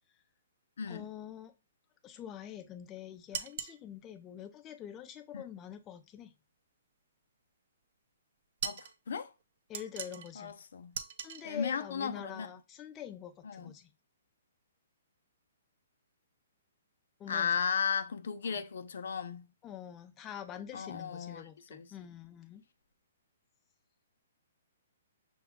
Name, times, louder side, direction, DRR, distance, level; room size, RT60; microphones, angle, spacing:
voice 1, 0.9-1.5 2.0-6.3 9.7-10.6 11.2-13.9 17.2-17.5 18.4-18.6 19.6-22.6, left 10 dB, 20° left, 0.5 m, -45 dB
sound 1, 3.3-3.8 8.6-8.9 9.7-10.3 10.9-11.4, right 8 dB, 55° right, 0.5 m, -39 dB
voice 2, 8.6-9.3 10.4-11.0 11.4-12.5 13.5-13.7 17.3-19.5 20.7-21.4 21.7-21.8, left 6 dB, 75° left, 0.5 m, -35 dB
6.1 x 2.3 x 3.6 m
hypercardioid pair, 150°, 0 cm